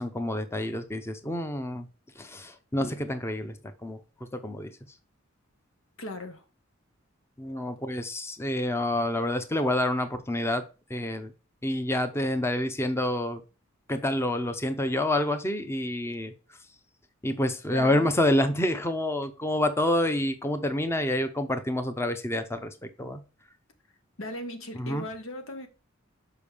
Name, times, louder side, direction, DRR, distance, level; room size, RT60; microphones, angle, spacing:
voice 1, 0.0-1.9 2.2-3.5 3.8-4.0 4.4-4.7 7.4-10.6 10.9-11.3 11.6-13.4 13.9-16.3 17.2-22.7 23.0-23.2 24.8-25.0, left 1 dB, 15° left, 0.7 m, -28 dB
voice 2, 6.0-6.4 17.7-18.1 24.2-25.7, left 1 dB, 85° left, 1.4 m, -37 dB
6.8 x 5.2 x 3.4 m
head